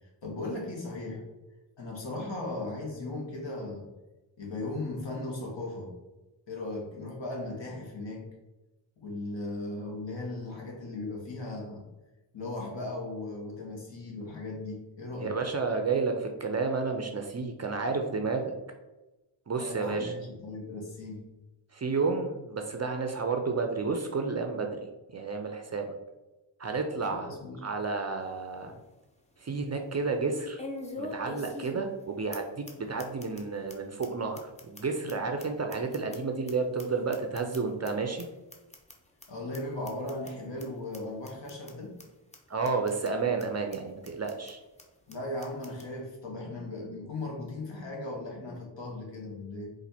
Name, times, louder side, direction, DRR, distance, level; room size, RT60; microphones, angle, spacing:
voice 1, 0.0-1.2 1.8-3.9 4.4-5.9 6.5-8.2 9.0-11.8 12.3-15.4 19.6-21.3 27.0-27.6 39.3-41.9 45.1-49.7, left 2 dB, 65° left, 0 dB, 1.3 m, -37 dB
voice 2, 15.2-18.5 19.5-20.1 21.7-24.7 25.1-25.9 26.6-27.3 27.6-28.8 29.4-30.6 31.0-38.3 42.5-44.6, right 4 dB, 35° right, 4 dB, 0.5 m, -31 dB
sound 1, 28.2-28.3 28.8-28.9 30.6-32.0 32.3-32.4 32.7-32.8 33.0-33.4 33.7-33.8 34.0-34.1 34.4-36.5 36.8-37.9 38.2-38.3 38.5-38.9 39.2-39.3 39.5-39.6 39.9-40.3 40.6-40.7 40.9-41.0 41.3-41.7 42.0-42.1 42.3-42.4 42.6-43.1 43.4-43.5 43.7-43.8 44.0-44.5 44.8-44.9 45.1-45.2 45.4-45.9, left 2 dB, 15° left, 0.6 m, -42 dB
4.2 x 2.6 x 4.1 m, 1.1 s
wide cardioid pair, 95°, 48 cm